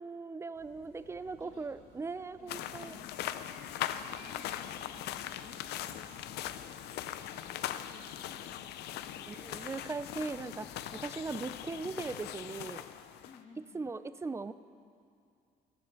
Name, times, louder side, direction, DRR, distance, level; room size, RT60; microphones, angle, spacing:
voice 1, 0.0-3.0 9.3-12.9 13.7-14.5, right 4 dB, 15° right, 14 dB, 0.5 m, -39 dB
sound 1, 0.5-12.2, right 2 dB, 80° right, 3.2 m, -61 dB
sound 2, 1.2-9.5, right 2 dB, 60° right, 4.0 m, -68 dB
voice 2, 1.3-1.7 2.4-3.6 4.1-6.9 7.2-9.2 13.2-13.8, left 4 dB, 45° left, 1 dB, 2.2 m, -58 dB
sound 3, 2.5-13.4, left 11 dB, 75° left, 0.6 m, -40 dB
14.5 x 10.0 x 6.8 m, 2.4 s
cardioid pair, 110°, 17 cm